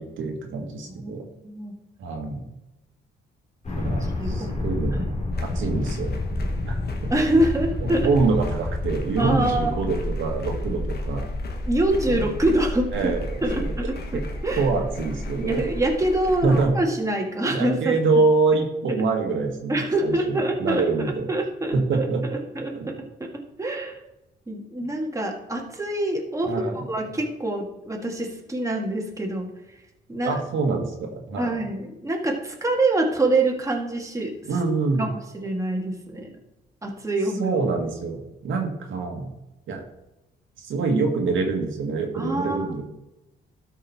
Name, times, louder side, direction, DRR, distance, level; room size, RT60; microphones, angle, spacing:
voice 1, 0.0-1.2 2.0-2.4 3.7-5.0 5.5-6.1 6.6-6.8 7.8-11.3 12.1-12.3 12.9-13.3 13.6-13.7 14.6-15.7 16.4-16.7 17.5-19.7 20.0-21.3 21.7-22.2 22.8-22.9 26.4-26.8 30.2-31.6 34.4-35.1 37.4-39.3 39.7-39.8 40.6-42.8, right 4 dB, 75° right, 2 dB, 1.8 m, -25 dB
voice 2, 0.9-1.7 4.0-4.5 4.9-5.1 7.1-8.1 9.2-9.8 11.7-13.1 13.4-14.7 15.4-18.0 19.7-24.0 24.5-29.8 30.1-30.4 31.4-34.3 35.0-36.3 36.8-37.5 42.1-42.7, right 1 dB, 15° right, 1 dB, 1.9 m, -26 dB
sound 1, 3.6-16.7, left 1 dB, 35° left, 2.4 m, -30 dB
sound 2, 5.3-16.7, left 4 dB, 55° left, 1.4 m, -42 dB
12.5 x 5.5 x 4.2 m, 0.94 s
cardioid pair, 90°, 20 cm